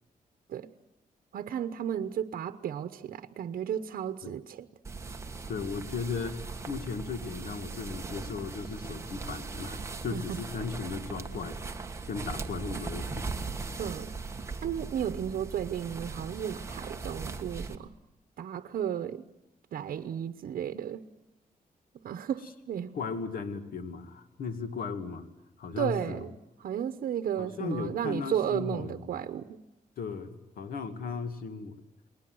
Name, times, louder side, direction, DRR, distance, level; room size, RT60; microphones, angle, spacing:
voice 1, 1.3-4.7 10.1-10.2 13.8-14.1 14.6-17.9 18.4-19.2 19.7-21.0 22.0-22.9 25.8-26.3 26.6-29.6, right 9 dB, 80° right, 10 dB, 1.0 m, -33 dB
sound 1, 4.8-17.8, right 4 dB, 20° right, 1.6 m, -39 dB
voice 2, 5.5-11.6 12.1-13.3 22.9-25.2 25.6-26.2 27.4-29.2 30.0-31.8, left 5 dB, 80° left, 9 dB, 2.3 m, -36 dB
30.0 x 20.5 x 7.9 m, 0.89 s
wide cardioid pair, 150°, 15 cm